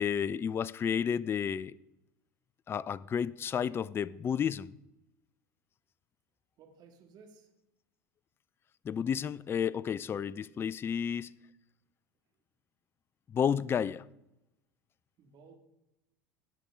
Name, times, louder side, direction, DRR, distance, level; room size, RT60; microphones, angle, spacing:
voice 1, 0.0-1.7 2.7-4.8 8.8-11.3 13.3-14.1, left 8 dB, 25° left, 0.4 m, -31 dB
voice 2, 6.6-7.5 15.2-15.6, right 5 dB, 45° right, 2.3 m, -57 dB
18.0 x 6.8 x 3.8 m
hypercardioid pair, 85°, 10 cm